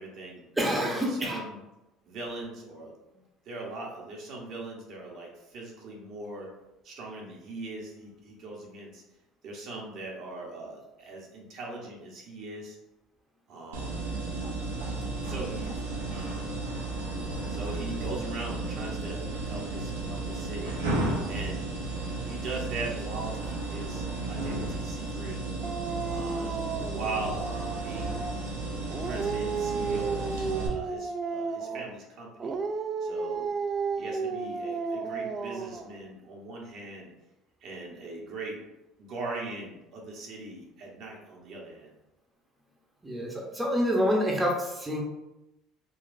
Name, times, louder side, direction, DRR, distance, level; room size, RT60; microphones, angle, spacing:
voice 1, 0.0-0.4 0.7-1.6 2.0-6.5 6.8-9.0 9.4-12.8 13.5-14.0 15.1-15.7 16.1-16.7 17.5-20.8 21.3-21.6 22.2-25.4 26.1-28.2 29.0-32.6 33.0-33.5 34.0-37.1 37.6-38.6 39.0-41.9, right 2 dB, 60° right, -2 dB, 0.9 m, -40 dB
voice 2, 0.6-1.4 43.0-45.0, equal, 10° right, -1 dB, 0.7 m, -27 dB
sound 1, 13.7-30.7, right 2 dB, 90° right, 0.7 m, -33 dB
Dog, 25.6-28.4 28.9-32.0 32.4-35.9, right 5 dB, 40° right, 0.3 m, -33 dB
3.9 x 2.3 x 2.5 m, 0.93 s
hypercardioid pair, 70°, 0 cm